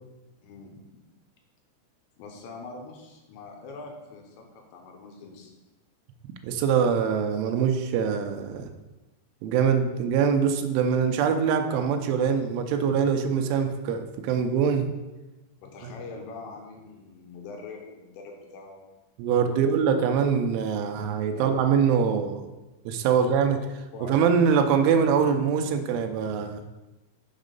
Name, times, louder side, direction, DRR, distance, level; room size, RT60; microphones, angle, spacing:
voice 1, 0.4-1.0 2.2-5.5 15.6-18.8 19.4-19.7 21.3-21.5 23.0-23.3 23.9-24.1, left 3 dB, 75° left, 1 dB, 3.0 m, -43 dB
voice 2, 6.4-8.7 9.4-14.9 15.8-15.9 19.2-22.4 22.9-23.6 24.0-26.6, right 7 dB, 85° right, 7 dB, 3.1 m, -23 dB
7.3 x 6.0 x 5.3 m, 1.1 s
omnidirectional pair, 5.6 m